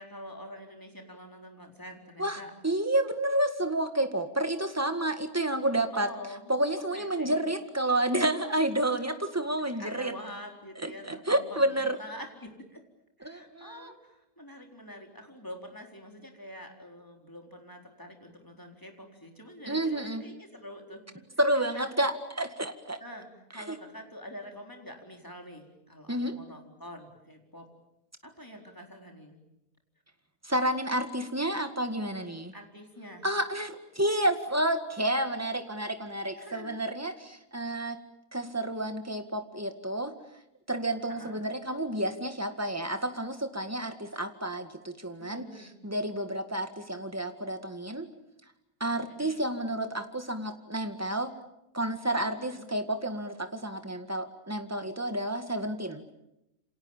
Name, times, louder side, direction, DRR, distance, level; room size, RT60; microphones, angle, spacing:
voice 1, 0.0-2.5 5.9-6.5 6.9-7.4 9.8-12.8 13.2-21.2 21.7-21.9 23.0-27.7 28.2-29.4 32.1-33.3 36.3-36.8 41.1-41.4 45.2-45.8 49.1-49.3 52.4-52.7, equal, 10° left, 2 dB, 4.2 m, -46 dB
voice 2, 2.2-6.1 6.5-10.1 10.8-12.0 13.2-13.9 19.7-20.2 21.4-23.0 23.7-23.8 26.1-26.4 30.4-32.5 33.2-38.0 38.3-40.1 40.7-48.1 48.8-51.3 51.7-56.0, right 1 dB, 10° right, 7 dB, 1.9 m, -30 dB
28.5 x 26.5 x 7.3 m, 0.88 s
omnidirectional pair, 1.6 m